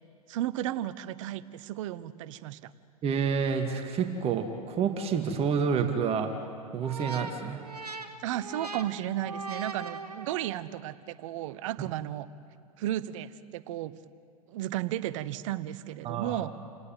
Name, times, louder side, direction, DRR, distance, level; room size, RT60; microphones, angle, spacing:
voice 1, 0.3-2.7 8.2-12.3 12.8-13.9 14.5-16.5, right 13 dB, 55° right, 15 dB, 1.1 m, -34 dB
voice 2, 3.0-6.3 6.7-7.6 16.0-16.4, right 6 dB, 30° right, 5 dB, 2.1 m, -28 dB
sound 1, 6.8-10.7, right 3 dB, 90° right, 1.8 m, -40 dB
29.5 x 17.5 x 9.1 m, 2.3 s
figure-of-eight pair, 95°, 20 cm